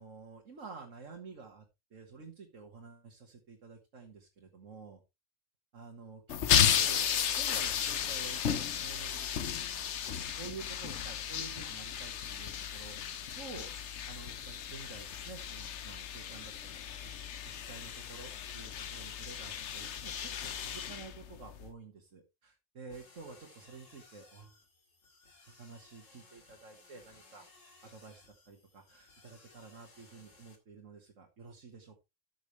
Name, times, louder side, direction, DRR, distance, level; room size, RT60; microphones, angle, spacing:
voice 1, 0.0-1.6 1.9-5.0 5.7-7.1 7.4-9.4 10.4-13.0 13.4-13.7 14.1-16.7 17.0-17.1 17.4-24.5 25.5-27.5 27.8-32.0, right 4 dB, 85° right, 1 dB, 1.9 m, -50 dB
sound 1, 6.3-21.7, left 8 dB, 70° left, 1.1 m, -34 dB
sound 2, 22.9-30.6, left 3 dB, 85° left, 2.5 m, -60 dB
14.0 x 6.2 x 3.2 m, 0.24 s
omnidirectional pair, 1.3 m